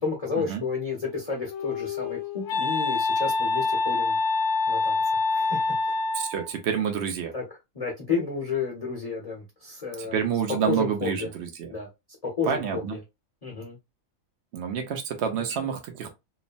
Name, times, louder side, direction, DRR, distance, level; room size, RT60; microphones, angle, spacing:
voice 1, 0.0-4.2 4.7-6.0 7.3-10.2 10.5-11.3 11.7-11.9 12.2-13.0 13.4-13.8 15.3-15.7, left 5 dB, 35° left, 0.8 m, -31 dB
Wind instrument woodwind instrument, 1.1-6.6, left 3 dB, 75° left, 1.0 m, -26 dB
voice 2, 6.1-7.3 10.0-11.7 12.5-13.0 14.5-16.1, right 7 dB, 60° right, 0.9 m, -28 dB
3.0 x 2.1 x 2.5 m
omnidirectional pair, 1.4 m